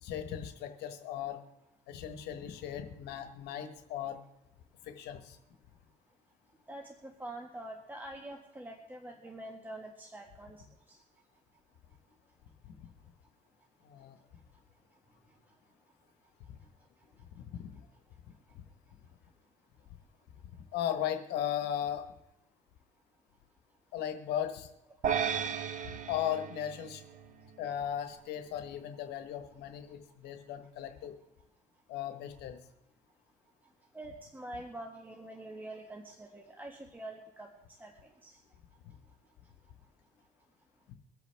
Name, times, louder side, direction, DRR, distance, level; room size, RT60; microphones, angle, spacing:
voice 1, 0.0-1.4 1.9-4.2 4.8-5.4 13.8-14.2 16.5-16.6 17.3-17.8 20.7-22.1 23.9-24.7 26.1-27.0 27.6-31.1 31.9-32.6 40.9-41.0, left 10 dB, 80° left, 7 dB, 1.3 m, -37 dB
voice 2, 6.7-11.0 33.9-37.5 37.8-38.4, right 1 dB, 10° right, 2 dB, 1.5 m, -45 dB
sound 1, 25.0-27.5, right 7 dB, 50° right, 1.1 m, -34 dB
23.5 x 8.3 x 3.4 m, 0.92 s
cardioid pair, 110°, 17 cm